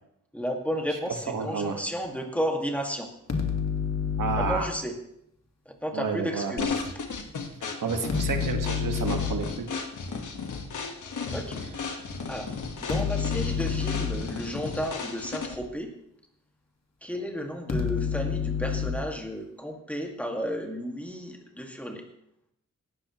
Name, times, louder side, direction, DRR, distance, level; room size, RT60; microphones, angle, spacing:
voice 1, 0.3-3.1 4.4-4.9 5.7-6.8 11.3-11.6 12.3-15.9 17.0-22.0, equal, 5° left, 2 dB, 2.0 m, -33 dB
voice 2, 1.3-1.8 4.2-4.7 5.9-6.7 7.8-9.6, right 5 dB, 85° right, 4 dB, 1.7 m, -30 dB
sound 1, 3.3-4.7 8.1-9.5 12.9-14.4 17.7-19.1, left 6 dB, 55° left, 1.9 m, -29 dB
sound 2, 6.6-15.7, left 5 dB, 70° left, 1.6 m, -35 dB
18.5 x 13.0 x 3.1 m, 0.76 s
wide cardioid pair, 130°, 31 cm